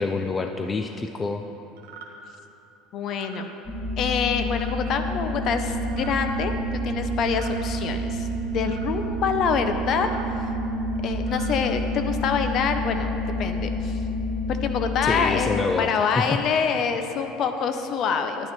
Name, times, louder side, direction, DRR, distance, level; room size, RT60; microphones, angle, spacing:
voice 1, 0.0-1.4 15.0-16.2, left 3 dB, 25° left, 6 dB, 0.5 m, -27 dB
sound 1, 1.8-2.1 3.0-3.4 4.5-4.8 5.8-6.2 7.2-7.6 8.6-8.9 9.9-10.3 11.1-11.6, right 8 dB, 75° right, 1.4 m, -45 dB
voice 2, 2.9-3.5 4.0-6.5 6.8-8.3 8.5-10.1 11.0-13.1 13.4-14.0 14.5-18.5, left 6 dB, 50° left, 7 dB, 0.8 m, -26 dB
sound 2, 3.6-15.6, equal, 5° left, 2.3 m, -28 dB
10.5 x 10.5 x 4.5 m, 3.0 s
hypercardioid pair, 75°, 0 cm